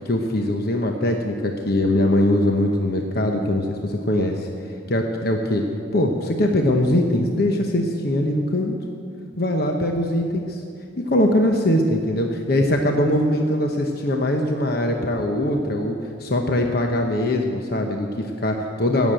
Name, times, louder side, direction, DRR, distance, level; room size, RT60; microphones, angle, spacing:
voice 1, 0.0-4.5 4.9-5.6 5.9-8.7 9.4-10.6 11.1-19.1, left 1 dB, 55° left, 3 dB, 1.0 m, -21 dB
16.5 x 7.3 x 9.0 m, 2.4 s
head